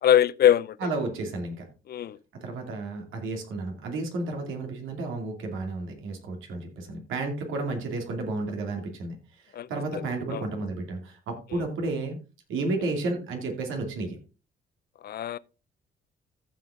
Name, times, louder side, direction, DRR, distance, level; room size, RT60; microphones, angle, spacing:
voice 1, 0.0-0.8 1.9-2.2 9.5-9.7 10.3-10.4 15.0-15.4, left 10 dB, 55° left, 0.6 m, -22 dB
voice 2, 0.8-1.7 2.3-12.2 12.5-14.2, right 2 dB, 85° right, 2.7 m, -32 dB
14.5 x 5.5 x 3.7 m
cardioid pair, 90°, 20 cm